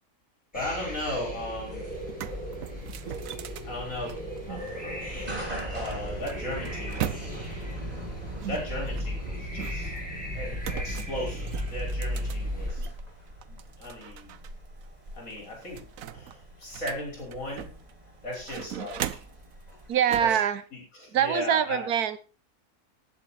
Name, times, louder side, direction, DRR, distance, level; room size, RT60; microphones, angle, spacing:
voice 1, 0.5-1.8 3.6-4.2 4.5-7.4 8.5-9.9 10.3-12.9 13.5-14.4 15.1-15.9 16.1-17.7 18.2-19.1 20.2-20.4 20.7-21.9, left 1 dB, 55° left, -1 dB, 5.5 m, -36 dB
sound 1, 0.5-12.7, equal, 5° left, 6.7 m, -36 dB
sound 2, 1.5-1.6 1.9-4.7 5.6-7.6 8.4-10.0 10.6-13.0 13.4-14.5 14.8-14.9 15.3-17.9 18.3-19.4 20.1-20.4, right 10 dB, 65° right, 1.1 m, -38 dB
sound 3, 1.7-19.9, right 1 dB, 25° right, 4.8 m, -43 dB
voice 2, 19.9-20.6 21.1-22.2, right 9 dB, 85° right, 13 dB, 1.5 m, -24 dB
18.5 x 7.6 x 4.2 m, 0.35 s
omnidirectional pair, 1.6 m